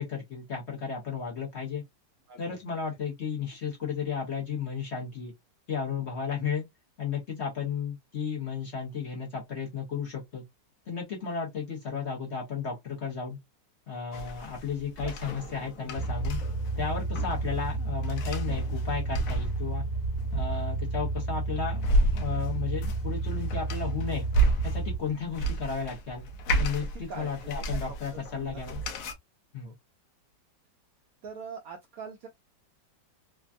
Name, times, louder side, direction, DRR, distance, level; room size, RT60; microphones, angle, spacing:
voice 1, 0.0-1.8 2.4-5.3 5.7-6.6 7.0-10.4 10.9-13.4 13.9-16.4 16.8-19.8 20.3-24.3 24.6-26.2 26.6-28.8 29.5-29.7, left 6 dB, 50° left, 0.8 m, -34 dB
voice 2, 2.3-2.8 15.0-15.9 26.9-28.6 29.6-29.7 31.2-32.3, right 5 dB, 75° right, 0.8 m, -44 dB
sound 1, 14.1-29.1, right 2 dB, 70° left, 1.0 m, -32 dB
sound 2, 15.9-25.0, right 3 dB, 85° left, 1.5 m, -31 dB
3.3 x 2.2 x 2.4 m
omnidirectional pair, 1.9 m